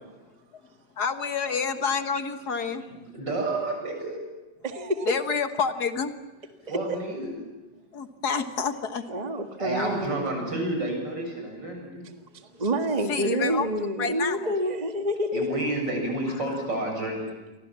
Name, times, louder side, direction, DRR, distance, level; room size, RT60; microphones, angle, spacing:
voice 1, 1.0-2.8 5.1-6.2 7.9-9.0 13.1-14.5, left 5 dB, 60° left, 9 dB, 1.9 m, -28 dB
voice 2, 2.9-4.2 6.7-7.3 9.6-12.1 15.3-17.3, right 1 dB, 75° right, 2 dB, 8.2 m, -30 dB
voice 3, 4.6-5.2 6.9-7.0 9.1-10.6 12.5-15.6, right 1 dB, 25° right, 6 dB, 1.6 m, -28 dB
29.5 x 23.5 x 7.5 m, 1.1 s
omnidirectional pair, 1.9 m